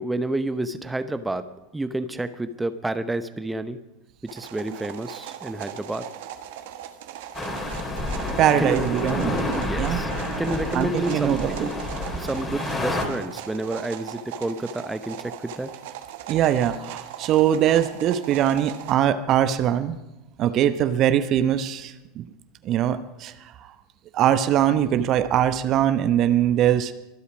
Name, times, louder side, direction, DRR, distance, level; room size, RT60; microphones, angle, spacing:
voice 1, 0.0-1.5 1.7-3.8 4.3-6.1 8.6-8.9 9.5-10.1 10.4-11.7 12.2-15.7, right 2 dB, 10° right, 11 dB, 0.8 m, -29 dB
sound 1, 4.3-18.9, right 10 dB, 60° right, 1.4 m, -39 dB
sound 2, 7.3-13.0, left 1 dB, 20° left, 3.4 m, -29 dB
voice 2, 8.4-9.4 9.8-10.1 10.7-11.7 16.3-20.0 20.4-22.2 22.6-23.3 24.1-26.9, right 10 dB, 40° right, 12 dB, 0.9 m, -22 dB
24.0 x 8.4 x 5.1 m, 0.97 s
figure-of-eight pair, 85°, 0 cm